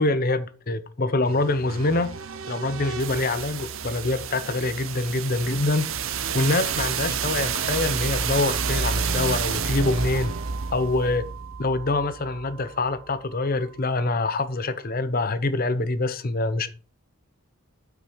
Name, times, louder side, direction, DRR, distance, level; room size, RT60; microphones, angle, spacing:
voice 1, 0.0-2.1 2.5-5.9 6.3-10.3 10.7-11.2 11.6-16.7, left 2 dB, 40° left, 0.8 m, -25 dB
sound 1, 1.2-13.1, right 6 dB, 65° right, 0.8 m, -30 dB
8.5 x 6.1 x 4.6 m
head